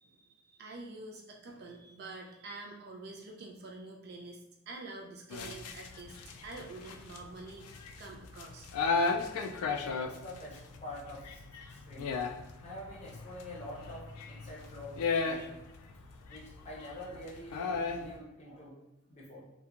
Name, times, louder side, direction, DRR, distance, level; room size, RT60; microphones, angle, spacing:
voice 1, 0.0-8.7 18.1-18.3, right 2 dB, 45° right, 0 dB, 0.3 m, -47 dB
sound 1, 5.3-18.1, left 4 dB, 90° left, 0.3 m, -36 dB
voice 2, 9.8-11.4 11.7-12.2 12.6-15.6 16.3-18.8 19.1-19.5, left 1 dB, 30° left, -4 dB, 0.6 m, -46 dB
2.8 x 2.2 x 2.4 m, 0.90 s
head